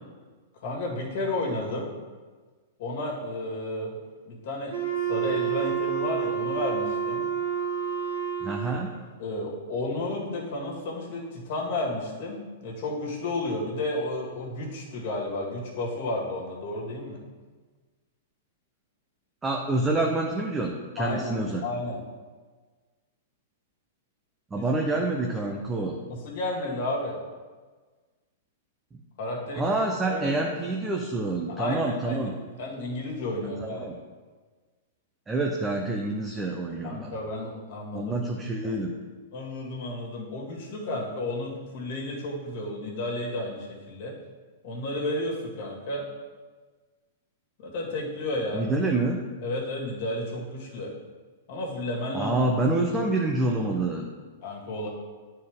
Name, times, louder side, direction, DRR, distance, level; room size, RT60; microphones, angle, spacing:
voice 1, 0.6-1.9 2.8-3.9 4.2-4.7 5.1-7.2 9.2-17.2 21.0-21.4 21.6-22.0 24.5-24.7 26.1-27.2 29.2-29.8 30.1-30.5 31.5-32.3 32.6-33.9 36.8-38.1 38.6-38.7 39.3-44.1 44.6-46.1 47.6-48.6 49.4-50.9 51.5-52.4 54.4-54.9, left 2 dB, 55° left, -2 dB, 2.1 m, -32 dB
Wind instrument woodwind instrument, 4.7-9.0, right 8 dB, 90° right, 1.5 m, -29 dB
voice 2, 8.4-8.9 19.4-21.6 24.5-26.0 29.6-32.3 33.6-34.0 35.3-37.1 37.9-38.9 48.5-49.2 52.1-54.1, right 2 dB, 15° right, 0 dB, 0.7 m, -27 dB
9.3 x 4.3 x 3.6 m, 1.4 s
hypercardioid pair, 115°, 0 cm